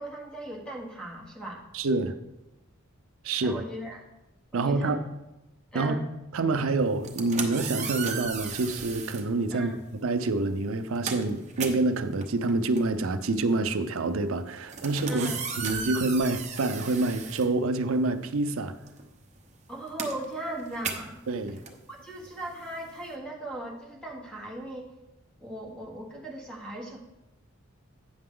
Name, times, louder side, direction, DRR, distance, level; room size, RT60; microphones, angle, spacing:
voice 1, 0.0-1.6 3.4-4.0 4.5-5.0 5.7-6.0 9.5-9.8 15.1-15.4 19.7-21.2 21.9-24.9 25.4-27.0, right 1 dB, 5° left, 1.4 m, -38 dB
voice 2, 1.7-2.1 3.2-3.6 4.5-5.0 5.7-6.0 6.3-15.3 15.6-18.7 21.3-21.6, right 2 dB, 70° right, 0.6 m, -27 dB
sound 1, 6.9-9.3 10.2-10.4 10.7-18.2 18.5-23.1, right 5 dB, 30° right, 0.8 m, -37 dB
8.7 x 6.8 x 3.8 m
head